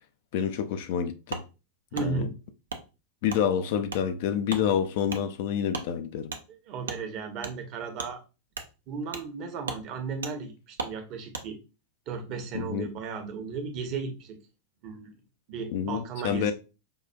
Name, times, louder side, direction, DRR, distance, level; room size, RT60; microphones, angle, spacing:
voice 1, 0.3-1.4 2.0-2.3 3.2-6.3 12.5-12.9 15.7-16.5, left 8 dB, 50° left, 0.4 m, -28 dB
Wood, 1.3-1.5 1.9-2.1 2.7-2.8 3.3-3.4 3.9-4.0 4.5-4.6 5.1-5.2 5.7-5.9 6.3-6.4 6.8-7.0 7.4-7.5 8.0-8.1 8.5-8.7 9.1-9.3 9.6-9.8 10.2-10.3 10.8-10.9 11.3-11.5, right 4 dB, 70° right, 0.5 m, -36 dB
voice 2, 1.9-2.3 6.7-8.2 8.9-11.6 12.1-14.4 14.8-15.1 15.5-16.5, right 5 dB, 40° right, 0.8 m, -35 dB
5.3 x 2.4 x 2.2 m
figure-of-eight pair, 90°, 0 cm